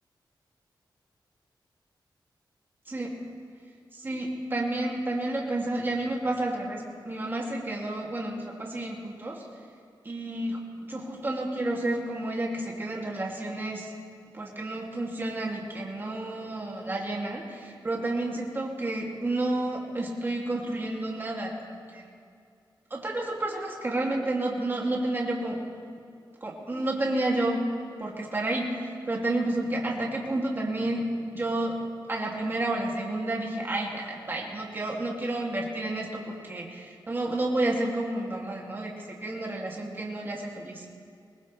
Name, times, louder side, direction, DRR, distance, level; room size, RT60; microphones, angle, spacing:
voice 1, 2.9-3.2 3.9-9.4 10.0-13.9 14.3-21.6 21.9-22.1 22.9-25.6 26.4-27.7 28.0-31.8 32.1-40.8, right 2 dB, 25° right, -2 dB, 2.5 m, -30 dB
22.5 x 19.5 x 3.3 m, 2.4 s
wide cardioid pair, 130°, 8 cm